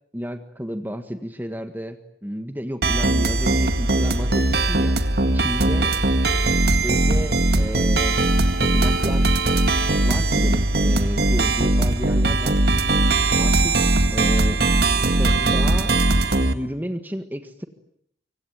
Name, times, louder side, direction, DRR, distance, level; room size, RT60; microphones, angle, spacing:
voice 1, 0.1-5.0 5.3-5.9 6.8-8.2 8.6-9.4 10.0-12.5 13.4-13.8 14.1-14.6 15.0-15.9 16.5-17.7, equal, 10° right, 7 dB, 1.7 m, -32 dB
sound 1, 2.8-16.5, right 2 dB, 65° right, 2.0 m, -20 dB
25.5 x 25.0 x 9.3 m, 0.71 s
head